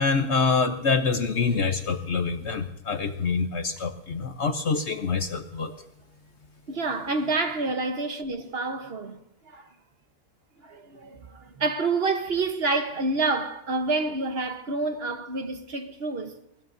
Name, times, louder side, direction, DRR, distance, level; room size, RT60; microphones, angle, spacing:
voice 1, 0.0-5.7, left 4 dB, 50° left, 1.0 m, -26 dB
voice 2, 6.7-9.2 9.5-9.6 10.6-16.4, right 3 dB, 45° right, 1.2 m, -28 dB
20.0 x 19.0 x 2.7 m
omnidirectional pair, 1.7 m